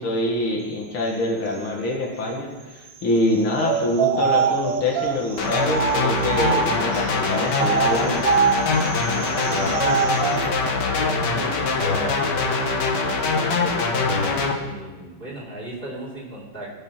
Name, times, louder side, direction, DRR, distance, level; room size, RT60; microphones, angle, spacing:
voice 1, 0.0-8.2, left 1 dB, 80° left, -1 dB, 2.6 m, -25 dB
sound 1, 3.6-7.0 7.5-10.4, right 7 dB, 60° right, 0.9 m, -24 dB
sound 2, 5.4-14.5, left 4 dB, 60° left, 1.7 m, -23 dB
voice 2, 9.0-12.6 13.2-16.7, right 2 dB, 25° right, -4 dB, 3.4 m, -36 dB
18.5 x 6.3 x 6.0 m, 1.2 s
omnidirectional pair, 2.3 m